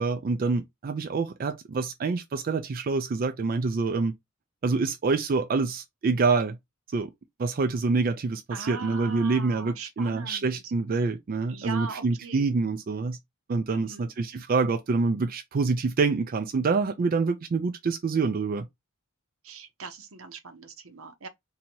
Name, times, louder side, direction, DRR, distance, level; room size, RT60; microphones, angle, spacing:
voice 1, 0.0-4.1 4.6-6.6 6.9-7.1 7.4-13.2 13.5-18.7, right 4 dB, 45° right, 0.4 m, -26 dB
voice 2, 8.5-10.6 11.5-12.4 13.7-14.1 19.4-21.3, right 4 dB, 80° right, 0.8 m, -40 dB
2.8 x 2.7 x 4.3 m
head